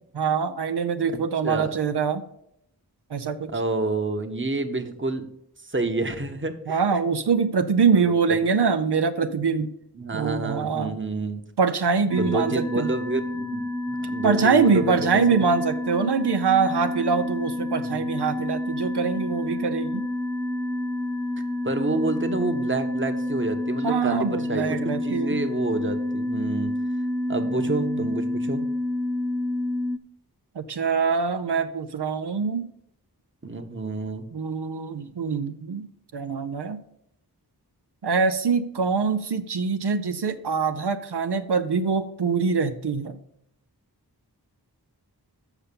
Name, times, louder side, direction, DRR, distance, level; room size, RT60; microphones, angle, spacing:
voice 1, 0.2-2.2 3.1-3.5 6.7-9.7 10.1-10.9 11.6-12.9 14.2-20.0 23.8-25.4 27.7-27.9 30.6-32.7 34.3-35.9 36.1-36.8 38.0-43.2, right 5 dB, 90° right, 8 dB, 0.6 m, -24 dB
voice 2, 1.4-1.8 3.5-5.3 5.7-6.8 9.9-11.4 12.2-15.4 17.8-18.0 21.6-26.7 27.3-28.6 33.4-34.3, right 2 dB, 30° right, 6 dB, 1.0 m, -29 dB
sound 1, 12.1-30.0, left 1 dB, 5° left, 0.7 m, -29 dB
7.0 x 5.7 x 6.8 m, 0.74 s
wide cardioid pair, 40°, 39 cm